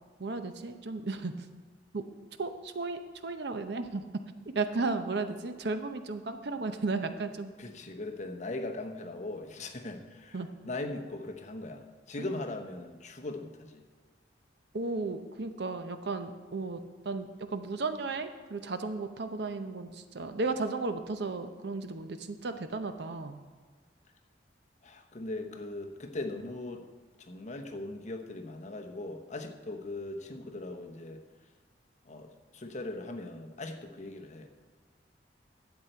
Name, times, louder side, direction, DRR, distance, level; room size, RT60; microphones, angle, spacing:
voice 1, 0.2-1.5 1.9-2.0 2.4-4.0 4.5-7.5 10.3-10.5 12.2-12.4 14.7-23.4, right 3 dB, 65° right, 9 dB, 0.7 m, -34 dB
voice 2, 7.6-13.8 24.8-26.9 27.2-31.2 32.0-34.5, left 2 dB, 45° left, 4 dB, 0.9 m, -39 dB
12.0 x 8.0 x 4.5 m, 1.5 s
head